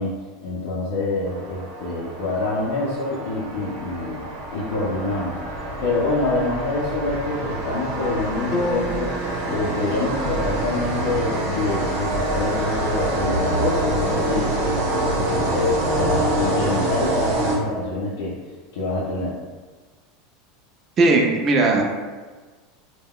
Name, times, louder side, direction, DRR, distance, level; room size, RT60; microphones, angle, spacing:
voice 1, 0.0-5.4 5.8-9.1 9.5-18.3 18.7-19.4, left 2 dB, 90° left, -7 dB, 0.5 m, -26 dB
sound 1, 1.2-18.1, right 1 dB, 80° right, 0.8 m, -26 dB
sound 2, 8.5-12.6, left 1 dB, 35° left, 0.4 m, -33 dB
voice 2, 21.0-21.8, right 2 dB, 25° right, 1 dB, 0.4 m, -17 dB
2.3 x 2.1 x 3.5 m, 1.4 s
supercardioid pair, 155°, 0 cm